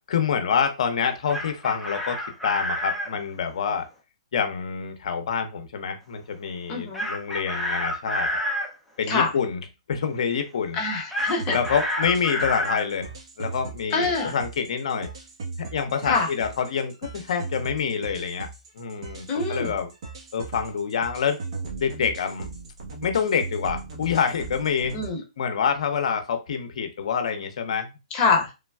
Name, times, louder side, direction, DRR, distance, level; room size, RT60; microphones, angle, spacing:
voice 1, 0.1-3.9 4.3-8.4 9.0-9.6 9.9-10.8 11.5-15.1 15.6-18.5 18.8-19.9 20.3-21.4 21.8-22.5 23.0-25.0 25.4-27.9, left 6 dB, 65° left, 7 dB, 0.6 m, -27 dB
Chicken rooster, 1.3-3.1 6.9-8.7 11.1-12.9, equal, ahead, 0.6 m, -28 dB
voice 2, 6.7-7.1 9.1-9.3 10.7-11.6 13.9-14.3 16.1-16.3 19.3-19.7 24.9-25.2 28.1-28.5, left 4 dB, 25° left, 0 dB, 0.9 m, -24 dB
sound 1, 11.2-25.1, right 3 dB, 55° right, 1.0 m, -38 dB
3.3 x 2.2 x 2.2 m, 0.26 s
hypercardioid pair, 145°, 4 cm